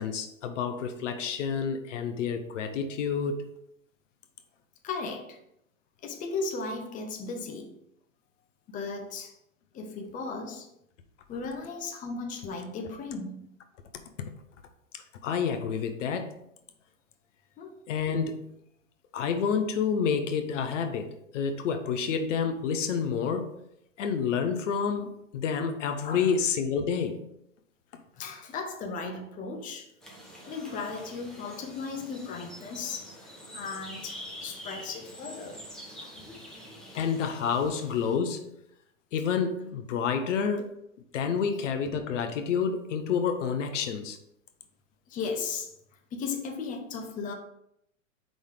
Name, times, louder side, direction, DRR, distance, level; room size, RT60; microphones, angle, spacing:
voice 1, 0.0-3.4 14.9-16.3 17.9-18.5 19.1-23.6 24.0-27.2 36.9-38.5 39.1-40.8 41.1-44.2, left 6 dB, 60° left, 0.9 m, -29 dB
voice 2, 4.8-5.4 6.0-7.8 8.7-9.3 9.7-10.7 11.3-13.5 17.6-17.8 26.0-26.3 28.1-29.9 30.4-33.1 33.5-35.6 36.0-36.1 36.9-37.1 45.1-45.7 46.1-47.3, left 4 dB, 20° left, 0.8 m, -36 dB
sound 1, 30.0-38.2, equal, ahead, 1.2 m, -46 dB
5.1 x 3.9 x 4.9 m
hypercardioid pair, 115°, 41 cm